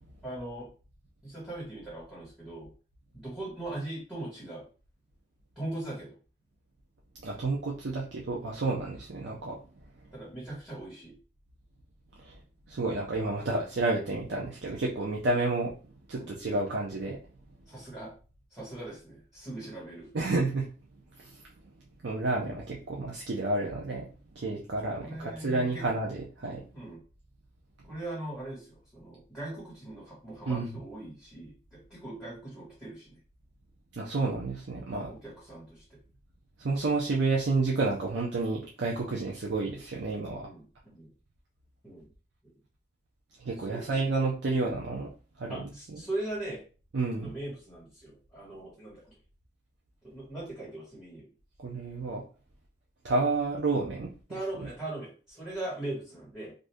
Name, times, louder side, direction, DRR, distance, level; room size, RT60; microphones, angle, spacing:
voice 1, 0.2-0.7 1.2-2.7 3.1-4.6 5.5-6.2 10.1-11.1 16.1-16.3 17.7-18.1 18.5-20.1 24.9-25.9 26.7-27.0 27.8-33.2 35.0-35.8 40.3-41.1 41.8-42.1 43.7-43.9 45.5-46.6 47.1-49.2 50.0-51.3 54.3-56.5, right 1 dB, ahead, -8 dB, 1.5 m, -40 dB
voice 2, 7.2-9.6 12.2-12.3 12.7-15.7 16.1-17.2 20.1-20.6 21.2-21.3 22.0-24.1 24.4-26.6 30.5-30.8 34.0-35.1 36.6-40.4 43.4-45.1 45.4-46.0 46.9-47.3 51.6-52.2 53.0-54.7, right 3 dB, 90° right, -2 dB, 0.6 m, -30 dB
2.6 x 2.6 x 3.4 m, 0.35 s
head